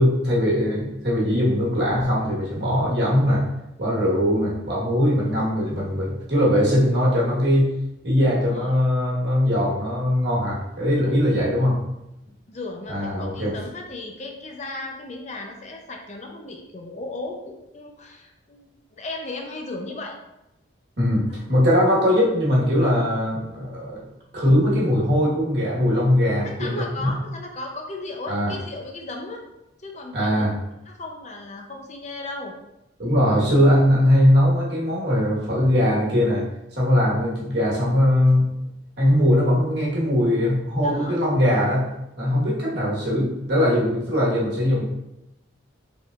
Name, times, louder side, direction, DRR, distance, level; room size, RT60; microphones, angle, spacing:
voice 1, 0.0-3.4 3.8-7.7 8.0-11.8 12.9-13.5 21.0-24.0 24.3-27.1 28.3-28.5 30.1-30.5 33.0-36.4 36.8-38.5 39.0-41.9 42.2-44.8, equal, 55° right, -5 dB, 1.3 m, -20 dB
voice 2, 8.2-8.8 11.0-11.1 12.5-20.2 21.3-21.4 26.4-29.4 29.8-30.5 30.9-32.5 40.8-41.2, left 2 dB, 35° left, 2 dB, 0.5 m, -36 dB
4.8 x 3.6 x 2.4 m, 0.90 s
head